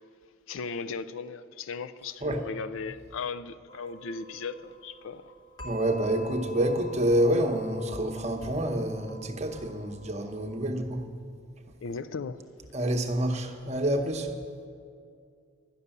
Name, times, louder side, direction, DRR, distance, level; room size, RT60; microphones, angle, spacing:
voice 1, 0.5-5.3 11.8-12.5, left 5 dB, 75° left, 0.4 m, -37 dB
sound 1, 3.7-10.5, left 2 dB, 20° left, 1.1 m, -48 dB
voice 2, 5.6-11.0 12.7-14.3, right 1 dB, 30° right, 0.9 m, -28 dB
12.0 x 6.7 x 9.9 m
head